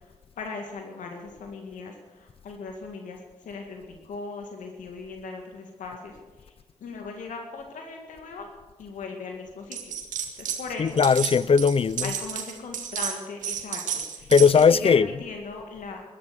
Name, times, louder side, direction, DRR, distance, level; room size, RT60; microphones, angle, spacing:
voice 1, 0.4-3.2 3.4-6.2 6.4-6.5 6.8-8.5 8.8-9.8 10.4-11.0 12.0-16.0, left 4 dB, 80° left, 2.0 m, -38 dB
sound 1, 9.7-10.6 10.9-14.8, right 8 dB, 85° right, 1.6 m, -32 dB
voice 2, 10.8-12.1 14.3-15.1, left 6 dB, 45° left, 0.5 m, -18 dB
14.0 x 11.5 x 8.1 m
supercardioid pair, 45°, 13 cm